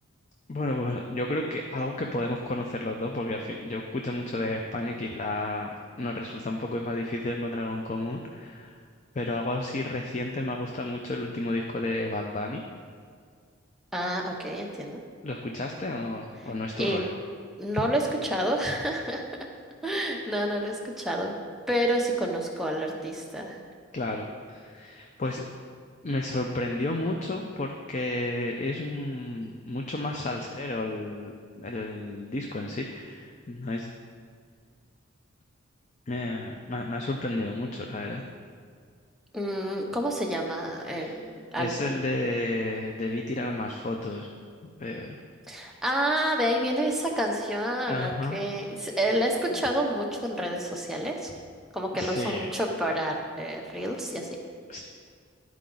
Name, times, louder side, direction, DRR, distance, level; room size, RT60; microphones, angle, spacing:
voice 1, 0.5-8.8 9.1-12.6 15.2-17.2 23.9-25.5 26.0-33.9 36.1-38.2 40.9-41.2 41.6-44.3 44.8-45.2 47.9-48.4 51.9-52.5 54.7-54.8, left 2 dB, 35° left, 2 dB, 0.4 m, -32 dB
voice 2, 13.9-15.0 16.8-17.1 17.6-19.3 19.8-21.3 21.7-23.6 39.3-42.0 45.5-51.3 51.7-54.4, right 1 dB, ahead, -1 dB, 0.7 m, -29 dB
11.5 x 4.7 x 3.8 m, 2.1 s
head